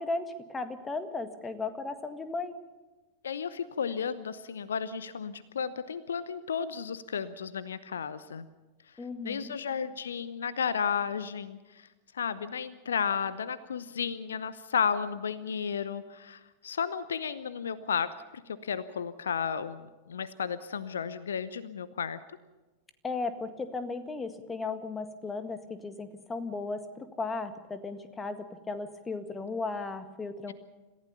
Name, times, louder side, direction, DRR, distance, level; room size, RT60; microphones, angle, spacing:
voice 1, 0.0-2.6 9.0-9.5 23.0-30.5, left 3 dB, 15° left, 9 dB, 1.8 m, -36 dB
voice 2, 3.2-8.5 9.2-11.9 12.1-18.1 18.5-22.2, left 7 dB, 65° left, 16 dB, 0.8 m, -33 dB
27.0 x 15.0 x 7.0 m, 1.2 s
figure-of-eight pair, 90°, 0 cm